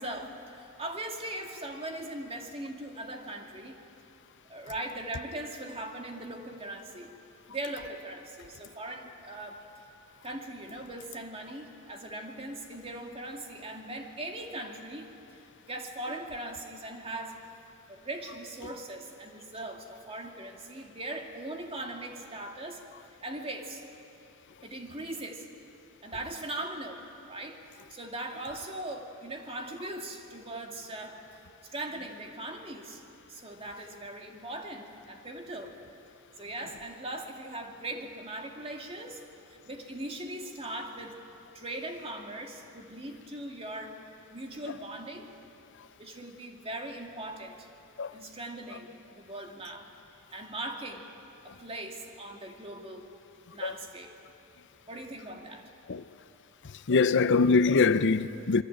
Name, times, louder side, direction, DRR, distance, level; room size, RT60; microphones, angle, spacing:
voice 1, 0.0-3.8 4.5-7.1 7.5-9.6 10.2-17.4 17.9-22.8 23.2-23.8 24.6-25.5 26.0-27.6 27.9-31.2 31.7-33.0 33.3-35.8 36.4-39.2 39.5-41.2 41.5-44.0 44.3-45.3 46.0-47.7 48.1-49.9 50.3-51.1 51.4-53.1 53.5-54.1 54.9-55.7, right 1 dB, 25° right, 2.4 m, -40 dB
voice 2, 56.9-58.6, left 4 dB, 55° left, 0.6 m, -23 dB
27.0 x 22.0 x 8.9 m
head